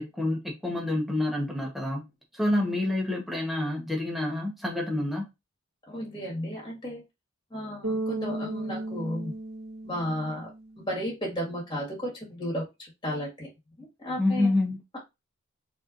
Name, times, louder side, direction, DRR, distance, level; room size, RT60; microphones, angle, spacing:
voice 1, 0.0-5.3 14.2-14.8, left 1 dB, ahead, 1.1 m, -28 dB
voice 2, 5.9-7.0 7.5-9.3 9.8-10.5 10.8-12.7 13.0-13.5 13.8-14.5, equal, 20° left, 1.9 m, -33 dB
Bass guitar, 7.8-11.0, right 2 dB, 80° right, 1.5 m, -34 dB
4.2 x 3.2 x 2.6 m
head